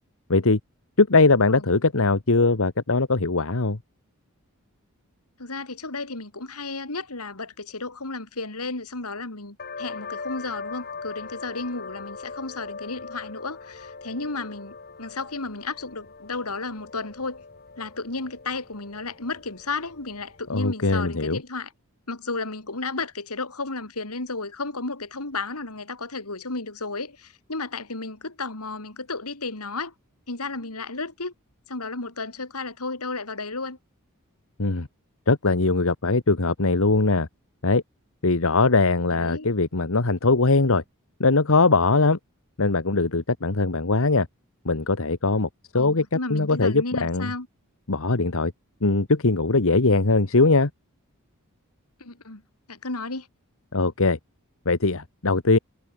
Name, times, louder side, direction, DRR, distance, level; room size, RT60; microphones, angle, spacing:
voice 1, 0.3-0.6 1.0-3.8 20.5-21.4 34.6-34.9 35.3-37.3 37.6-37.8 38.2-40.8 41.2-42.2 42.6-44.3 44.6-45.5 45.7-47.3 47.9-48.5 48.8-50.7 53.7-54.2 54.6-55.6, left 3 dB, 65° left, 1.4 m, -21 dB
voice 2, 5.4-17.4 17.8-21.7 22.1-29.9 30.3-31.3 31.7-33.8 39.1-39.5 45.7-47.5 52.0-52.4 52.7-53.3, left 3 dB, 80° left, 3.5 m, -33 dB
sound 1, 9.6-20.9, left 4 dB, 45° left, 3.0 m, -41 dB
head